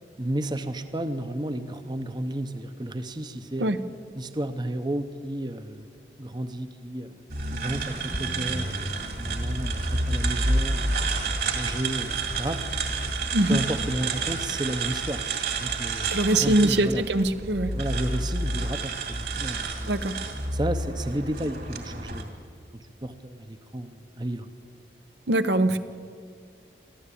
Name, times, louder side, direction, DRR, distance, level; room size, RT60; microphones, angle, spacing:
voice 1, 0.2-3.7 4.1-5.9 6.2-7.2 7.5-11.0 11.4-12.7 13.5-15.3 15.5-17.0 17.7-18.9 19.3-19.9 20.5-22.4 22.7-24.5, right 1 dB, 25° right, 10 dB, 0.8 m, -32 dB
sound 1, 7.3-22.2, right 3 dB, 55° right, 2.5 m, -29 dB
voice 2, 16.1-17.7 19.9-20.1 25.3-25.8, right 1 dB, 75° right, 10 dB, 0.9 m, -22 dB
23.0 x 14.5 x 8.5 m, 2.2 s
head